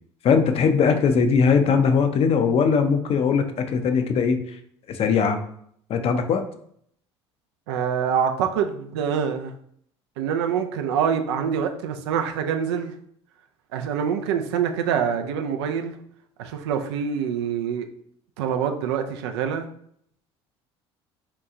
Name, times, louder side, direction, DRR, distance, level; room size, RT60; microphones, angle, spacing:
voice 1, 0.2-4.4 4.9-5.4 5.9-6.4, left 5 dB, 45° left, 7 dB, 0.5 m, -20 dB
voice 2, 7.7-9.5 10.2-12.9 13.7-16.0 16.4-17.9 18.4-19.7, right 7 dB, 80° right, 6 dB, 0.4 m, -25 dB
2.9 x 2.3 x 3.6 m, 0.67 s
hypercardioid pair, 70°, 14 cm